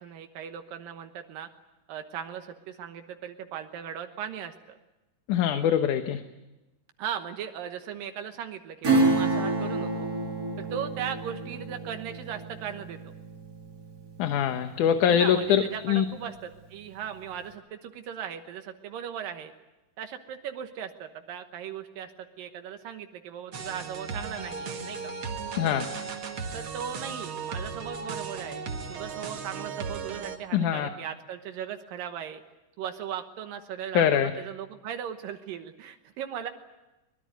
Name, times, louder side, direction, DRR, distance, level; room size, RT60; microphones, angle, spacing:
voice 1, 0.0-1.5 1.9-4.8 7.0-10.1 10.6-13.1 15.1-19.5 20.0-22.1 22.4-25.2 26.5-32.4 32.8-36.5, right 8 dB, 80° right, 6 dB, 2.9 m, -38 dB
voice 2, 5.3-6.2 14.2-16.0 25.6-25.9 30.5-30.9 33.9-34.3, left 9 dB, 70° left, 7 dB, 2.5 m, -23 dB
Acoustic guitar / Strum, 8.8-15.0 15.4-15.5, right 2 dB, 30° right, 2.8 m, -29 dB
sound 1, 23.5-30.4, right 5 dB, 45° right, 2.3 m, -36 dB
23.5 x 21.5 x 9.3 m, 1.0 s
omnidirectional pair, 3.9 m